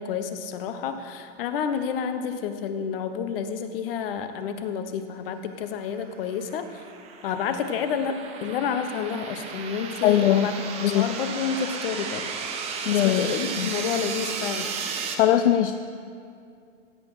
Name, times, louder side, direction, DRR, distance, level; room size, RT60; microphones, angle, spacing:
voice 1, 0.0-6.7 7.2-10.5 10.9-12.3 12.9-14.7, left 7 dB, 50° left, 8 dB, 1.1 m, -29 dB
sound 1, 6.2-15.1, right 5 dB, 15° right, 0.7 m, -34 dB
voice 2, 10.0-10.5 10.8-11.1 12.9-13.3 13.6-13.7 15.2-15.7, left 11 dB, 65° left, 8 dB, 0.6 m, -20 dB
16.5 x 8.8 x 4.9 m, 2.4 s
supercardioid pair, 160°, 38 cm